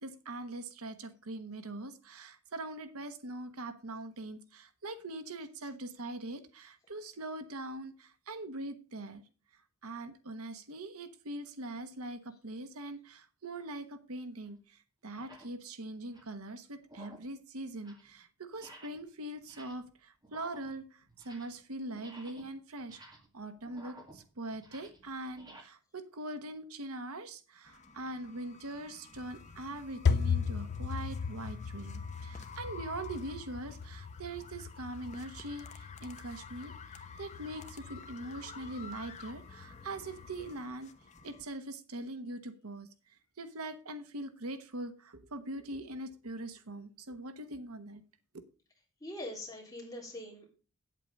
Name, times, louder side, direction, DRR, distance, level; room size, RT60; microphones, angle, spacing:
voice 1, 0.0-9.2 9.8-14.6 15.0-23.0 23.3-40.9 41.2-42.9 43.4-48.0, right 2 dB, 80° right, 10 dB, 1.2 m, -42 dB
sound 1, 13.5-13.7 14.5-14.6 15.1-15.6 16.0-16.4 16.8-17.4 17.7-18.1 18.5-19.1 19.4-19.9 20.2-21.7 21.9-25.6, right 1 dB, 20° right, 2.1 m, -55 dB
sound 2, 27.7-41.4, left 5 dB, 35° left, 1.0 m, -52 dB
sound 3, 29.1-40.5, left 5 dB, 50° left, 0.4 m, -37 dB
voice 2, 49.0-50.5, left 1 dB, 15° left, -1 dB, 3.5 m, -43 dB
8.8 x 8.2 x 5.3 m, 0.36 s
head